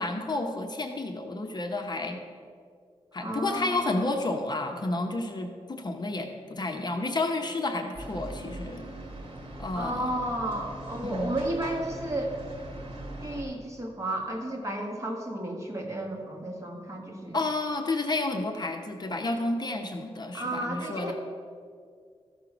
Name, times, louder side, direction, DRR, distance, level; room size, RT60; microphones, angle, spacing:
voice 1, 0.0-2.2 3.1-8.9 9.6-10.1 11.0-11.4 17.3-21.1, left 2 dB, 40° left, 4 dB, 0.9 m, -31 dB
voice 2, 3.2-4.1 9.7-12.4 13.2-17.4 20.3-21.1, right 1 dB, 30° right, 1 dB, 1.6 m, -32 dB
sound 1, 7.9-13.4, right 1 dB, 55° right, 1.8 m, -40 dB
13.5 x 5.6 x 6.0 m, 2.1 s
wide cardioid pair, 115°, 11 cm